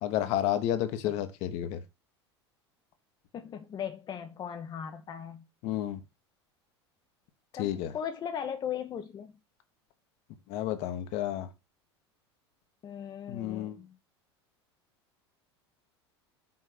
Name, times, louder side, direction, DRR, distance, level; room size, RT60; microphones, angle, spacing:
voice 1, 0.0-1.8 5.6-6.0 7.6-7.9 10.5-11.5 13.3-13.8, left 12 dB, 50° left, 1.2 m, -31 dB
voice 2, 3.3-5.5 7.5-9.3 12.8-14.0, left 8 dB, 30° left, 0.9 m, -38 dB
5.9 x 4.6 x 5.9 m
figure-of-eight pair, 75°, 14 cm